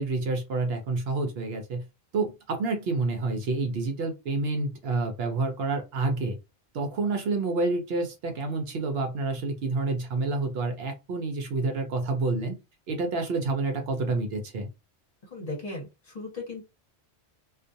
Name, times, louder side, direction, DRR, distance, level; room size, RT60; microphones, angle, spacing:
voice 1, 0.0-1.8 2.1-6.4 6.7-12.5 12.9-14.7, right 3 dB, 65° right, 0.8 m, -28 dB
voice 2, 15.3-16.6, left 2 dB, 35° left, 0.9 m, -36 dB
2.4 x 2.1 x 2.6 m
omnidirectional pair, 1.2 m